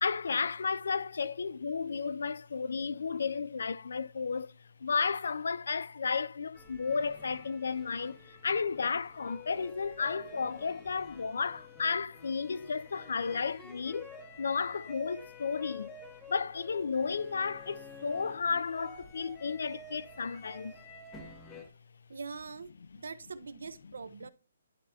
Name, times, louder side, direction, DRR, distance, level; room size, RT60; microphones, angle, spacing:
voice 1, 0.0-4.5 4.8-14.1 14.4-15.9 16.3-20.7, left 5 dB, 60° left, 0.4 m, -33 dB
sound 1, 6.5-21.7, left 2 dB, 5° left, 0.7 m, -50 dB
voice 2, 22.1-22.7 23.0-24.3, right 5 dB, 80° right, 0.8 m, -43 dB
11.0 x 4.3 x 2.7 m
hypercardioid pair, 175°, 0 cm